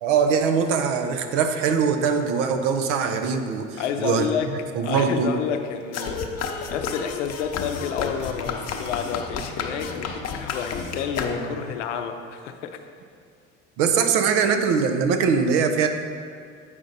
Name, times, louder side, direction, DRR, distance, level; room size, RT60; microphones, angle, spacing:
voice 1, 0.0-4.3 4.8-5.3 13.8-15.9, right 6 dB, 75° right, 7 dB, 0.7 m, -22 dB
voice 2, 3.8-4.5 4.8-12.8, left 8 dB, 85° left, 6 dB, 0.6 m, -30 dB
sound 1, 5.9-11.8, left 5 dB, 45° left, 0.8 m, -31 dB
7.5 x 5.1 x 4.0 m, 2.2 s
hypercardioid pair, 65°, 35 cm